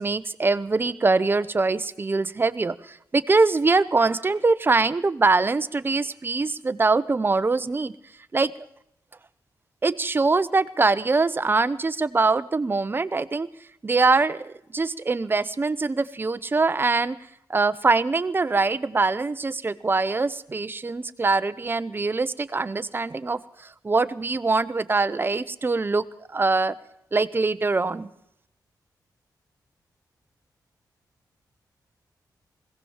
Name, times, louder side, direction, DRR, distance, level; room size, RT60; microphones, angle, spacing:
voice 1, 0.0-7.9 8.3-8.5 9.8-13.5 13.8-17.2 17.5-26.7 27.1-28.1, right 3 dB, 30° right, 14 dB, 0.9 m, -23 dB
21.0 x 17.0 x 7.3 m, 0.76 s
wide cardioid pair, 110°, 7 cm